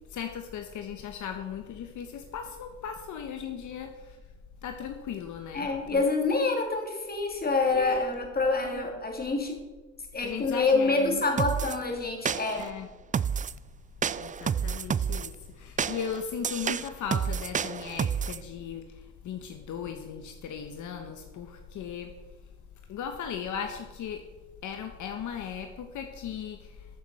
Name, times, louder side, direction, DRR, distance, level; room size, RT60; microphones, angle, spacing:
voice 1, 0.1-4.2 4.6-6.0 7.7-8.0 8.7-8.8 10.2-11.2 12.6-12.9 14.2-22.1 22.9-24.3 24.6-26.9, left 7 dB, 75° left, 5 dB, 1.3 m, -37 dB
voice 2, 5.5-9.6 10.1-12.7, left 3 dB, 30° left, 2 dB, 3.1 m, -27 dB
sound 1, 11.4-11.8 12.3-12.7 13.1-13.6 14.0-15.3 15.8-18.4, right 7 dB, 25° right, 0.4 m, -29 dB
13.5 x 7.3 x 6.6 m, 1.2 s
cardioid pair, 90°, 30 cm